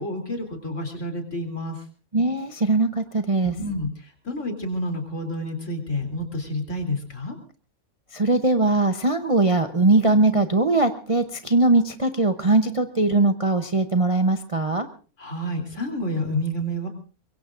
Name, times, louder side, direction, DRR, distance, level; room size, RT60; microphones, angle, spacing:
voice 1, 0.0-1.8 3.4-7.4 15.2-16.9, left 1 dB, 55° left, 4 dB, 3.6 m, -29 dB
voice 2, 2.1-3.5 8.1-14.9, right 2 dB, 30° right, 6 dB, 0.8 m, -20 dB
24.5 x 22.0 x 2.5 m, 0.37 s
omnidirectional pair, 1.6 m